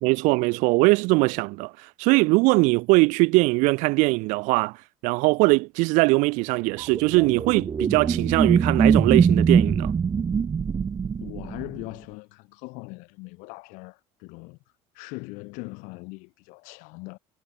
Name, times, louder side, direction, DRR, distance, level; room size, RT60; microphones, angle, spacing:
voice 1, 0.0-4.8 5.0-9.9, right 26 dB, 75° right, 0.6 m, -21 dB
sound 1, 6.8-11.8, right 6 dB, 30° right, 1.1 m, -22 dB
voice 2, 11.2-14.6 14.9-17.2, left 28 dB, 80° left, 5.4 m, -40 dB
supercardioid pair, 90°, 13 cm